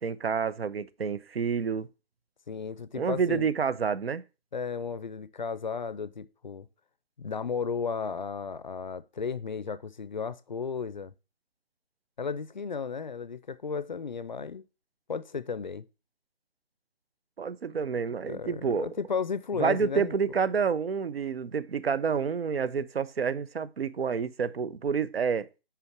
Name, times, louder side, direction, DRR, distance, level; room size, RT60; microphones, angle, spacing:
voice 1, 0.0-1.9 2.9-4.2 17.4-18.9 19.6-25.5, right 6 dB, 70° right, 0.7 m, -29 dB
voice 2, 2.5-3.5 4.5-6.7 7.2-11.1 12.2-14.6 15.1-15.8 18.2-20.1, left 5 dB, 50° left, 0.5 m, -34 dB
5.8 x 5.0 x 5.9 m
hypercardioid pair, 165°, 31 cm